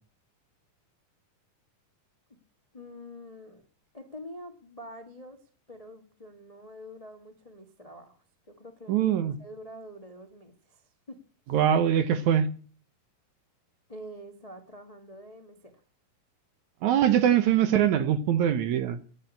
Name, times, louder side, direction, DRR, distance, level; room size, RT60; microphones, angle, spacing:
voice 1, 2.7-3.6 3.9-8.2 8.5-11.2 13.9-15.8, equal, 35° left, 6 dB, 0.5 m, -46 dB
voice 2, 8.9-9.4 11.5-12.5 16.8-19.0, right 9 dB, 70° right, 11 dB, 2.1 m, -23 dB
15.0 x 9.0 x 8.7 m, 0.42 s
omnidirectional pair, 4.1 m